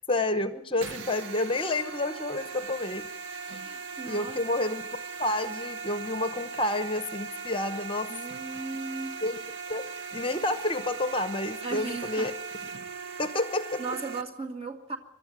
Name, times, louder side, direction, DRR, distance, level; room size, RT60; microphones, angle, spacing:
voice 1, 0.1-3.1 3.5-3.6 4.0-4.8 5.2-8.1 9.2-12.3 13.2-13.8, left 2 dB, 25° left, 11 dB, 0.9 m, -30 dB
sound 1, 0.8-14.2, right 5 dB, 60° right, 0.9 m, -39 dB
voice 2, 3.6-4.4 8.1-9.2 11.6-12.3 13.8-15.0, right 3 dB, 30° right, 3 dB, 2.2 m, -36 dB
24.0 x 12.5 x 9.2 m, 0.79 s
head